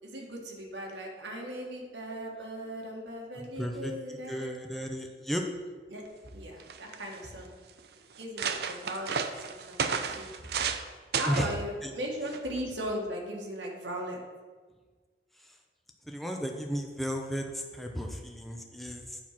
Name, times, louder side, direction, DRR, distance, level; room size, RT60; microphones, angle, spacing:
voice 1, 0.0-4.5 5.9-6.0 6.3-7.5 8.2-9.2 9.5-10.5 11.2-14.2, equal, 75° right, -1 dB, 1.8 m, -38 dB
voice 2, 3.3-5.4 11.3-11.5 11.8-11.9 16.1-19.2, equal, ahead, 2 dB, 0.7 m, -34 dB
sound 1, 6.3-6.4 6.6-7.2 7.8-7.9 8.2-10.8 11.1-11.5 12.3-12.6, right 6 dB, 60° right, 0.5 m, -32 dB
9.5 x 4.5 x 5.9 m, 1.4 s
head